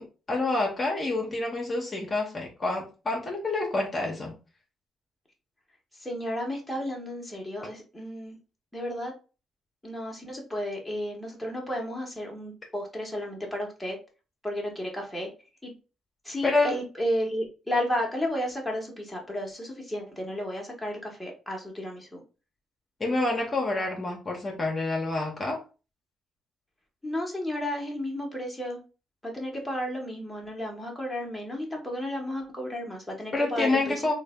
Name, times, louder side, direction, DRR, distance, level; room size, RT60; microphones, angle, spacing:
voice 1, 0.0-4.3 16.4-16.8 23.0-25.6 33.3-34.1, left 2 dB, 30° left, 0 dB, 0.9 m, -28 dB
voice 2, 6.0-8.4 8.7-9.1 9.8-14.0 14.4-15.3 15.6-15.7 16.2-22.2 27.0-28.8 29.2-34.1, equal, 5° left, -1 dB, 1.1 m, -33 dB
3.2 x 2.3 x 3.5 m, 0.33 s
cardioid pair, 90°, 0 cm